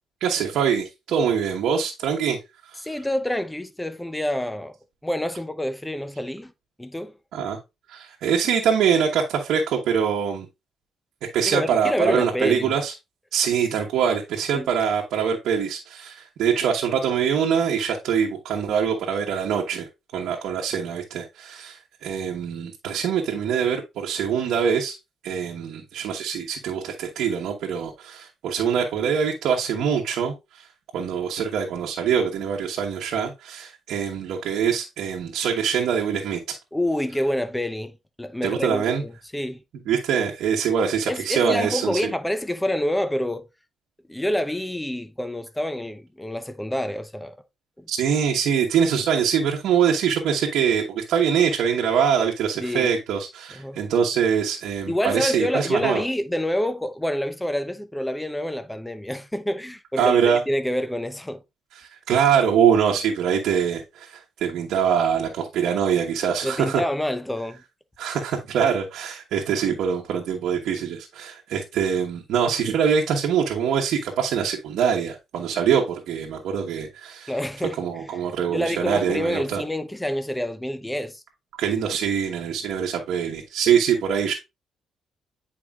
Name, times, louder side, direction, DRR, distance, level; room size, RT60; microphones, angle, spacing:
voice 1, 0.2-2.4 2.7-2.8 7.3-7.6 7.9-10.5 11.3-12.9 13.3-19.9 20.1-21.8 22.0-25.0 25.2-30.6 30.9-36.6 38.4-39.0 39.9-42.1 47.9-56.0 60.0-60.4 61.8-66.8 68.0-77.3 77.8-79.6 81.6-84.3, right 7 dB, 80° right, 1.1 m, -23 dB
voice 2, 2.8-4.7 5.0-6.5 6.8-7.1 11.5-12.8 14.5-14.7 36.7-39.6 41.1-43.4 44.1-47.4 47.8-47.9 52.6-53.0 53.5-53.8 54.9-61.4 66.4-67.6 77.3-77.8 78.1-78.2 78.5-81.2, left 1 dB, 10° left, 0.8 m, -27 dB
8.8 x 4.7 x 2.4 m
cardioid pair, 90°, 0 cm